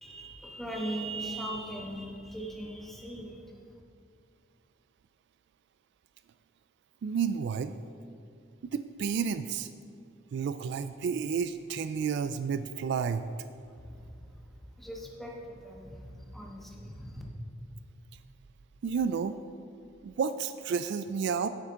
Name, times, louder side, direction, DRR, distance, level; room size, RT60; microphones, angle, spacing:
voice 1, 0.0-3.6 13.6-17.2, right 1 dB, ahead, -2 dB, 1.2 m, -40 dB
voice 2, 7.0-7.7 8.6-9.7 10.3-13.3 18.8-19.4 20.0-21.5, right 6 dB, 60° right, 12 dB, 0.3 m, -31 dB
10.5 x 7.9 x 3.7 m, 2.3 s
head